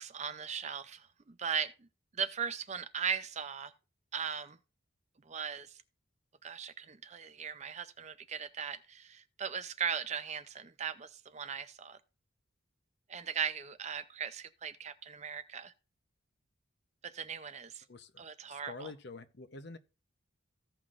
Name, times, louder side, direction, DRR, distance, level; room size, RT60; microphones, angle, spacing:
voice 1, 0.0-1.9 2.1-3.7 4.1-4.6 5.3-5.8 6.4-12.0 13.1-15.7 17.0-17.8 18.2-18.9, right 7 dB, 35° right, 0.5 m, -38 dB
voice 2, 17.9-19.8, left 3 dB, 55° left, 0.8 m, -47 dB
15.5 x 5.8 x 2.5 m
head